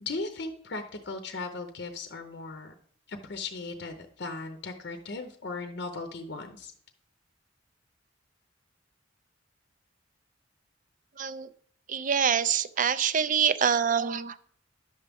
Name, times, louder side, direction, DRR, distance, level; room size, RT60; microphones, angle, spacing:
voice 1, 0.0-2.7 3.1-6.7, left 3 dB, 60° left, 7 dB, 0.7 m, -37 dB
voice 2, 11.2-11.5 11.9-14.4, right 7 dB, 40° right, 14 dB, 0.5 m, -25 dB
10.5 x 7.1 x 3.5 m, 0.63 s
head